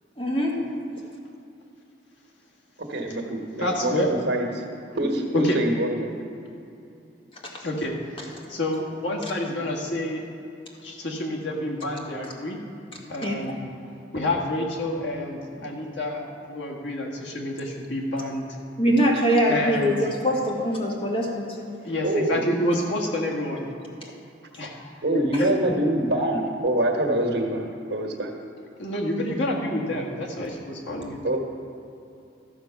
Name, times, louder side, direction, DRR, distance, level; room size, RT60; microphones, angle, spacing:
voice 1, 0.2-0.5 7.4-7.6 13.2-13.3 18.8-21.7 25.3-25.4, equal, 30° left, -2 dB, 1.8 m, -23 dB
voice 2, 2.9-4.6 4.9-6.1 22.0-22.4 25.0-28.3 31.2-31.4, right 1 dB, 65° right, 2 dB, 1.4 m, -25 dB
voice 3, 3.6-4.1 5.3-5.6 7.6-7.9 8.5-10.2 10.8-12.6 13.1-13.6 14.1-18.5 19.5-20.0 21.8-23.6 24.6-25.5 28.8-31.4, left 1 dB, 85° left, -1 dB, 1.7 m, -28 dB
13.5 x 6.7 x 5.8 m, 2.7 s
head